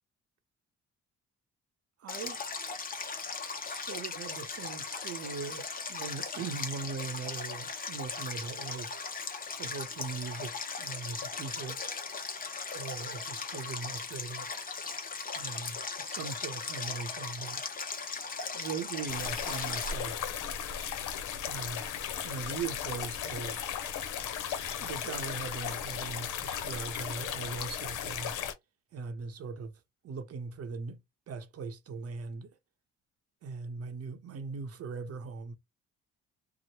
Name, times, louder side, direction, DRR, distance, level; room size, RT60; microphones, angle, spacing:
voice 1, 2.0-2.5 3.6-9.0 9.6-11.8 12.7-14.5 15.3-17.6 18.5-20.3 21.4-21.9 22.2-23.7 24.8-28.4 28.9-31.0 31.3-32.5 33.4-35.5, right 5 dB, 55° right, 0.7 m, -40 dB
Stream, 2.1-19.9, left 4 dB, 30° left, 0.8 m, -38 dB
sound 1, 19.1-28.5, left 8 dB, 85° left, 0.7 m, -36 dB
2.9 x 2.1 x 2.9 m
cardioid pair, 90°, 30 cm